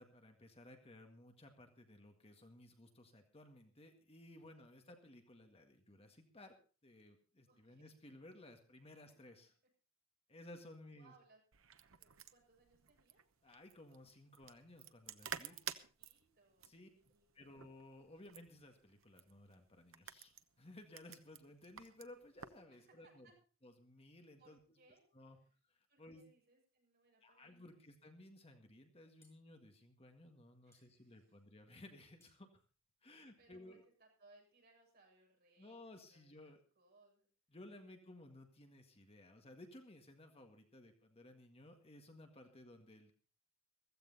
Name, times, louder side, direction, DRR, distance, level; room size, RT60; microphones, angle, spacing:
voice 1, 0.0-6.5 6.8-9.5 10.3-11.1 13.4-15.6 16.6-16.9 17.3-23.3 23.6-24.6 25.1-25.4 25.7-26.3 27.2-32.6 33.0-33.8 35.6-36.6 37.5-43.1, left 1 dB, 30° left, 5 dB, 1.8 m, -58 dB
voice 2, 4.6-5.0 7.5-7.9 10.9-11.4 11.8-13.2 15.4-16.7 17.0-17.5 22.7-23.4 24.4-25.0 25.4-25.5 25.9-27.8 30.6-31.4 33.0-35.8 36.1-36.3 36.8-37.3 37.7-37.9 42.4-42.5, right 3 dB, 50° right, 0 dB, 7.4 m, -70 dB
sound 1, 11.5-22.6, right 8 dB, 70° right, 1.0 m, -52 dB
sound 2, 29.2-33.8, left 2 dB, 15° left, 6.2 m, -78 dB
15.5 x 15.0 x 4.1 m, 0.37 s
head